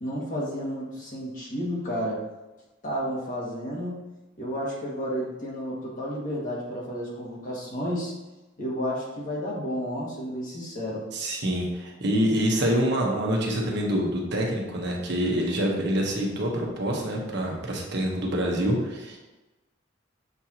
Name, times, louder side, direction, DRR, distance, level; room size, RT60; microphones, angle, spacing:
voice 1, 0.0-2.2 2.8-4.0 4.4-8.1 8.6-11.1, equal, 45° left, -5 dB, 1.9 m, -31 dB
voice 2, 11.1-19.2, equal, 60° right, -1 dB, 1.2 m, -26 dB
7.1 x 4.5 x 2.9 m, 1.1 s
head